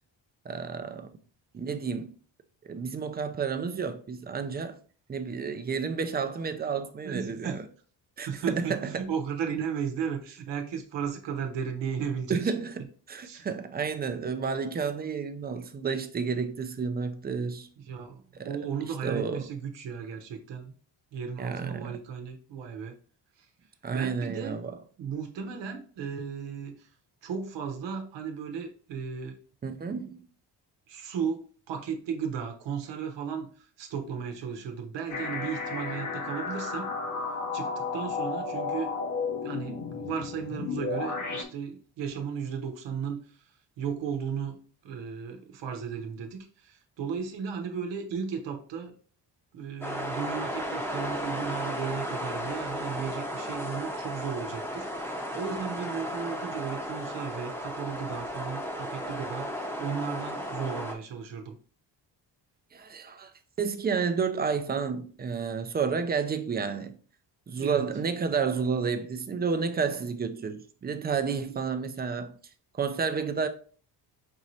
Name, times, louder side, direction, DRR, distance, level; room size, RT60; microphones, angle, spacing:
voice 1, 0.4-1.1 1.5-2.1 2.6-4.7 5.1-7.6 8.2-9.0 12.3-17.7 18.3-18.6 19.0-19.4 21.4-22.0 23.8-24.8 29.6-30.2 62.7-63.3 63.6-67.0 67.5-72.4 72.8-73.5, right 5 dB, 25° right, 0.4 m, -31 dB
voice 2, 7.0-7.6 8.3-12.5 13.2-13.4 17.8-20.7 21.1-22.9 23.4-23.5 23.9-24.5 25.0-26.9 27.2-29.4 30.9-36.9 37.5-38.9 39.4-43.4 43.8-44.6 44.8-49.0 49.5-59.5 59.8-61.6 67.6-67.8, right 7 dB, 85° right, 0.8 m, -35 dB
sound 1, 35.1-41.4, left 4 dB, 45° left, 0.7 m, -33 dB
sound 2, 49.8-60.9, equal, 5° left, 0.7 m, -34 dB
5.4 x 3.0 x 2.7 m
cardioid pair, 130°, 42 cm